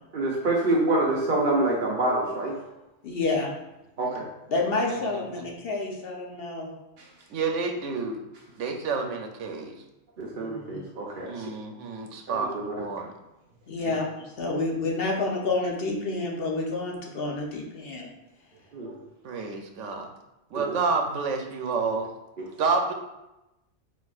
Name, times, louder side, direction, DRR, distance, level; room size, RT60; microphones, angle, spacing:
voice 1, 0.1-2.5 4.0-4.2 10.2-11.5 12.3-12.9 18.7-18.9 20.5-20.8, right 2 dB, 50° right, -3 dB, 0.8 m, -26 dB
voice 2, 3.0-3.5 4.5-6.7 10.3-10.9 13.7-18.1, left 3 dB, 55° left, -1 dB, 0.9 m, -29 dB
voice 3, 4.9-5.2 7.3-8.2 8.6-9.8 11.2-13.1 19.2-20.1 20.5-22.1 22.6-22.9, right 4 dB, 85° right, 4 dB, 1.0 m, -29 dB
4.3 x 4.3 x 2.4 m, 0.95 s
omnidirectional pair, 1.2 m